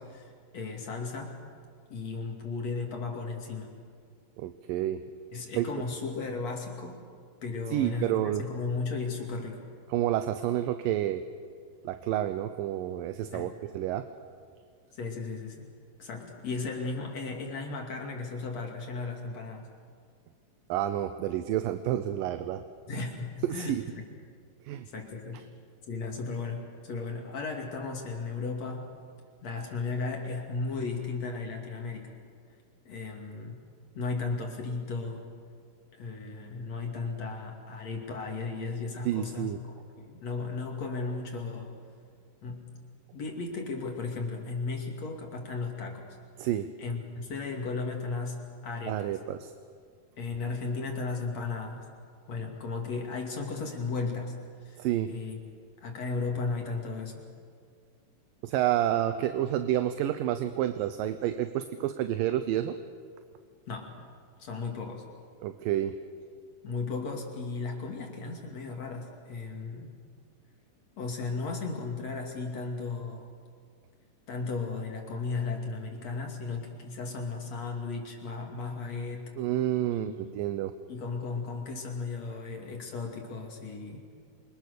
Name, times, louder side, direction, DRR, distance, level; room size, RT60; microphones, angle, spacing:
voice 1, 0.0-1.3 1.9-3.7 5.3-7.0 7.4-9.6 13.3-13.5 14.9-15.7 16.0-19.7 22.9-23.8 24.9-25.5 25.9-28.9 29.4-32.1 32.9-33.6 34.0-35.3 36.0-41.8 42.4-42.7 43.1-46.1 46.4-46.5 46.8-49.2 50.2-51.9 52.3-54.3 54.6-55.4 55.8-57.2 63.7-64.0 64.4-65.0 66.6-69.9 71.0-73.3 74.3-79.3 79.9-80.4 80.9-84.1, left 4 dB, 50° left, 1 dB, 3.5 m, -35 dB
voice 2, 4.4-5.0 5.6-5.7 7.7-8.4 9.9-11.2 11.8-14.0 20.7-22.6 23.5-23.8 24.7-24.9 39.1-39.6 46.4-46.7 48.9-49.5 54.8-55.1 58.4-62.8 65.4-65.9 79.4-80.7, right 12 dB, 80° right, 10 dB, 2.5 m, -29 dB
27.5 x 24.5 x 6.7 m, 2.1 s
omnidirectional pair, 4.0 m